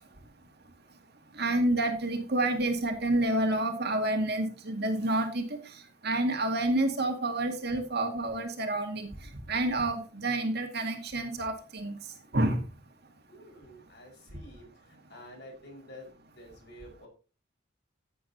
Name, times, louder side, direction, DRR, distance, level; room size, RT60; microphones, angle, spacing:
voice 1, 1.4-5.6 6.0-9.1 9.5-12.0 12.3-12.6, right 1 dB, 55° right, 5 dB, 2.1 m, -28 dB
voice 2, 13.3-17.1, left 1 dB, 60° left, 2 dB, 5.2 m, -50 dB
14.5 x 8.5 x 2.9 m, 0.34 s
head